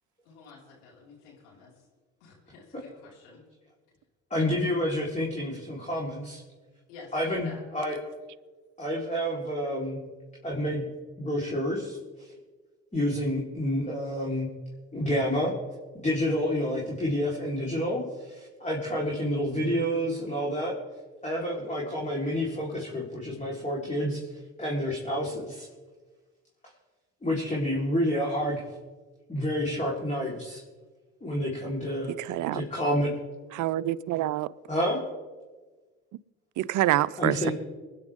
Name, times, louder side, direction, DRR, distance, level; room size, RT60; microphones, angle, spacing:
voice 1, 0.2-1.7 2.2-3.4 6.9-7.6, left 3 dB, 80° left, 5.4 m, -50 dB
voice 2, 4.3-6.4 7.1-8.0 8.8-10.0 10.4-10.9 11.2-12.0 12.9-14.5 14.9-15.5 16.0-20.7 21.2-24.2 24.6-25.7 27.2-28.6 29.3-30.6 31.2-32.1 32.5-33.1 34.7-35.0 37.2-37.5, equal, 20° left, 4.3 m, -29 dB
voice 3, 32.1-32.6 33.5-34.5 36.6-37.5, right 14 dB, 55° right, 0.7 m, -27 dB
26.0 x 10.0 x 3.8 m
hypercardioid pair, 55°, 36 cm